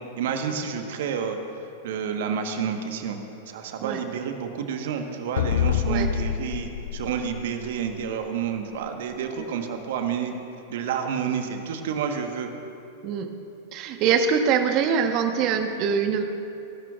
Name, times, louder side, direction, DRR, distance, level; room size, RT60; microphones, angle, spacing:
voice 1, 0.2-1.4 1.8-3.2 3.5-10.3 10.7-12.5, right 7 dB, 60° right, 5 dB, 1.3 m, -29 dB
sound 1, 5.4-8.1, left 10 dB, 65° left, 0.4 m, -27 dB
voice 2, 13.7-16.2, right 6 dB, 45° right, 6 dB, 1.2 m, -23 dB
29.0 x 12.0 x 2.5 m, 2.9 s
figure-of-eight pair, 95°, 0 cm